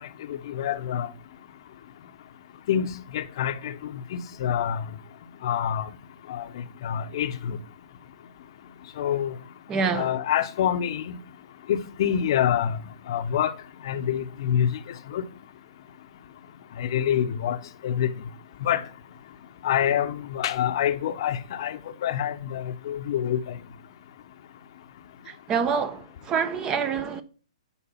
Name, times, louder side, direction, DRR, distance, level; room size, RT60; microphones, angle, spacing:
voice 1, 0.3-1.1 2.7-2.9 3.1-4.8 5.4-5.9 6.3-7.6 9.0-9.4 9.9-11.2 11.7-12.8 13.1-13.5 13.8-14.8 15.1-15.2 16.8-17.6 17.8-18.1 18.6-18.8 19.6-23.6, left 9 dB, 50° left, 0.8 m, -26 dB
voice 2, 9.7-10.1 25.5-27.2, right 6 dB, 20° right, 0.7 m, -26 dB
10.5 x 4.4 x 5.6 m
hypercardioid pair, 130°, 3 cm